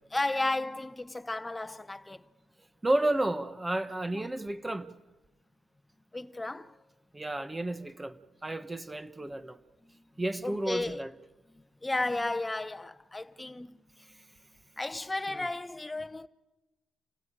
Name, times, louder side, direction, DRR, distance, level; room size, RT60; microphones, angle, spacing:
voice 1, 0.1-2.3 4.1-4.3 6.1-6.8 9.8-9.9 10.4-11.0 11.8-13.7 14.8-16.3, left 2 dB, 15° left, 0.9 m, -33 dB
voice 2, 2.8-4.9 7.1-8.2 8.4-9.6 10.2-11.1, right 1 dB, 15° right, 1.2 m, -31 dB
28.5 x 15.5 x 8.9 m
cardioid pair, 90°, 0 cm